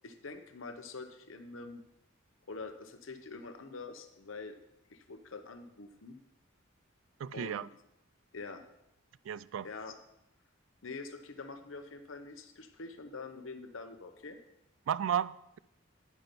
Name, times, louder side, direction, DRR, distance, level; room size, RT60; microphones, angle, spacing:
voice 1, 0.0-1.8 2.5-4.6 4.9-6.2 7.3-7.7 8.3-8.6 9.6-10.0 10.8-14.4, left 3 dB, 70° left, 0.9 m, -45 dB
voice 2, 7.2-7.7 9.3-9.7 14.9-15.6, right 9 dB, 75° right, 0.3 m, -33 dB
9.4 x 5.9 x 5.2 m
head